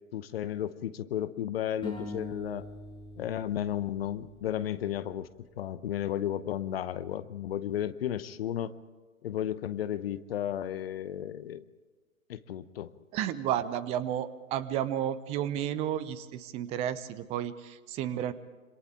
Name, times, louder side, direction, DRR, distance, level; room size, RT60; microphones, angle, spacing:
voice 1, 0.1-2.7 3.2-5.3 5.6-8.8 9.2-11.6 12.3-12.9, left 11 dB, 45° left, 14 dB, 0.9 m, -33 dB
sound 1, 1.8-5.1, left 3 dB, 10° left, 6.9 m, -42 dB
voice 2, 13.1-18.3, right 10 dB, 15° right, 17 dB, 0.6 m, -32 dB
27.0 x 26.0 x 3.7 m, 1.4 s
figure-of-eight pair, 115°, 43 cm